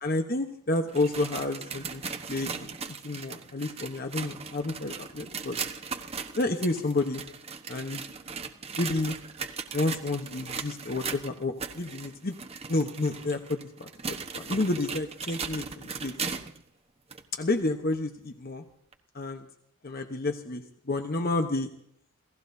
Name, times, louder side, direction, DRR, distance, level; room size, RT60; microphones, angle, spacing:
voice 1, 0.0-2.0 2.3-2.8 3.0-5.6 6.4-7.2 7.7-8.0 8.8-9.2 9.7-12.3 12.7-13.9 14.3-16.1 17.3-18.6 19.1-19.5 19.8-20.6 20.9-21.7, left 2 dB, 45° left, 5 dB, 1.1 m, -30 dB
sound 1, 0.7-16.6 17.1-17.2 17.9-18.0 18.9-19.0, right 5 dB, 30° right, 1.1 m, -38 dB
28.5 x 17.0 x 2.7 m, 0.70 s
head